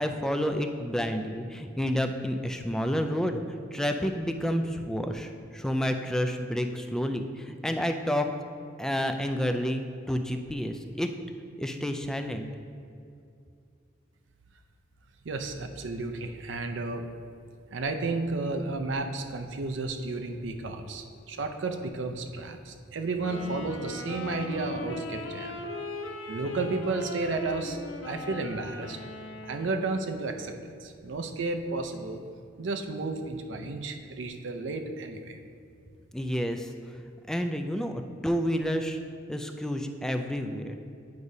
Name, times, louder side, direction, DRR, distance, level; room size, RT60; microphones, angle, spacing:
voice 1, 0.0-3.4 3.7-8.3 8.8-11.1 11.6-12.5 36.1-37.0 37.3-39.0 39.3-40.8, equal, 5° left, 5 dB, 0.3 m, -30 dB
voice 2, 15.2-17.1 17.7-25.6 26.3-27.8 28.0-29.0 29.4-30.5 30.8-32.2 32.6-35.4, right 3 dB, 70° right, 6 dB, 0.5 m, -32 dB
Wind instrument woodwind instrument, 23.2-30.0, left 2 dB, 75° left, 0.6 m, -39 dB
9.4 x 4.8 x 2.7 m, 2.4 s
head